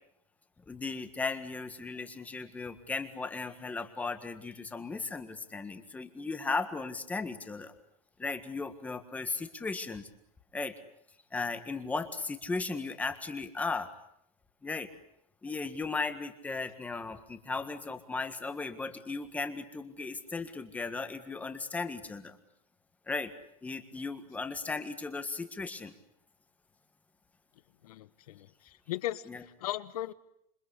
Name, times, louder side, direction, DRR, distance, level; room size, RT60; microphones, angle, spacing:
voice 1, 0.7-7.7 8.2-10.1 10.5-10.8 11.3-13.9 14.6-14.9 15.4-22.4 23.1-23.3 23.6-25.9 29.3-29.4, left 4 dB, 10° left, 9 dB, 1.6 m, -36 dB
voice 2, 27.8-30.1, left 14 dB, 90° left, 14 dB, 1.5 m, -38 dB
27.5 x 24.5 x 8.4 m, 0.73 s
supercardioid pair, 175°, 18 cm